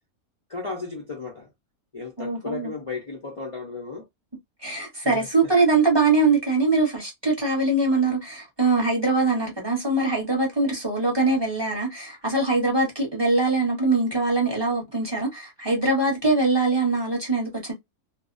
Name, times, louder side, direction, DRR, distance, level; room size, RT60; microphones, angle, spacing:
voice 1, 0.5-1.5 1.9-4.0 5.0-5.3, left 4 dB, 60° left, 0.3 m, -34 dB
voice 2, 2.2-2.7 4.6-17.7, right 3 dB, 25° right, 0.7 m, -22 dB
2.5 x 2.0 x 2.4 m
omnidirectional pair, 1.5 m